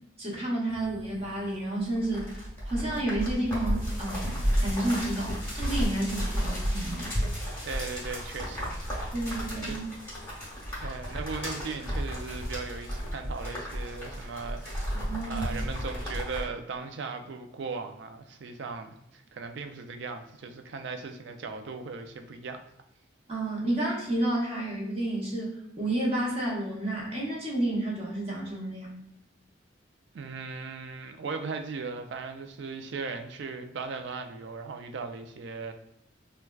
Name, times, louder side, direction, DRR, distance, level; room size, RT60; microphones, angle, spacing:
voice 1, 0.2-2.4 2.7-7.2 9.1-9.9 14.9-15.5 23.3-29.0, right 1 dB, 30° right, -4 dB, 0.9 m, -31 dB
sound 1, 0.7-16.4, equal, 10° left, 1.0 m, -33 dB
voice 2, 7.6-8.8 9.7-9.8 10.8-14.9 15.3-22.6 30.1-35.7, right 4 dB, 65° right, 6 dB, 0.4 m, -38 dB
4.5 x 2.2 x 2.3 m, 0.78 s
head